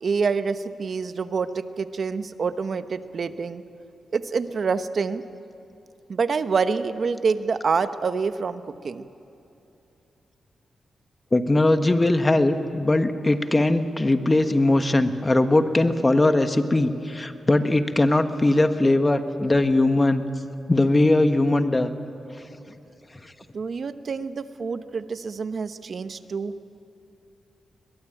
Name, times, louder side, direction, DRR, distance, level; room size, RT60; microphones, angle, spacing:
voice 1, 0.0-3.6 4.1-5.2 6.1-9.1 23.5-26.5, right 5 dB, 60° right, 11 dB, 1.0 m, -27 dB
voice 2, 11.3-20.2 20.7-21.9, left 2 dB, 25° left, 8 dB, 1.5 m, -20 dB
22.5 x 21.0 x 9.1 m, 2.9 s
cardioid pair, 75°, 0 cm